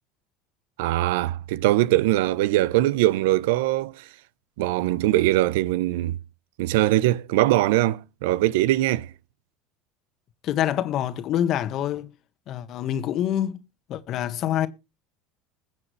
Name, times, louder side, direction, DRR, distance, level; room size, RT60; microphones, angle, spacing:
voice 1, 0.8-4.1 4.6-6.2 6.6-9.1, right 16 dB, 80° right, 0.7 m, -22 dB
voice 2, 10.4-12.1 12.5-13.6 13.9-14.7, left 11 dB, 50° left, 1.4 m, -26 dB
21.5 x 7.5 x 3.2 m
supercardioid pair, 105°, 0 cm